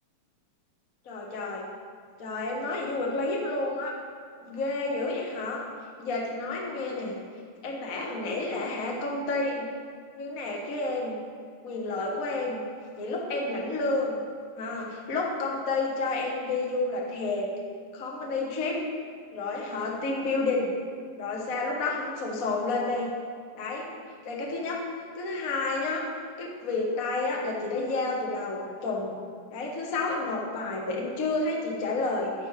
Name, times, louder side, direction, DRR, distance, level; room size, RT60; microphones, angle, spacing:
voice 1, 1.0-1.6 2.2-4.0 4.4-5.6 6.0-7.2 7.6-9.7 10.1-11.2 11.6-12.6 13.0-14.2 14.5-17.5 17.9-18.8 19.3-20.7 21.2-23.1 23.5-23.9 24.2-24.8 25.1-26.1 26.4-29.2 29.5-32.3, left 3 dB, 80° left, -2 dB, 0.7 m, -30 dB
10.5 x 10.0 x 3.3 m, 2.1 s
omnidirectional pair, 3.8 m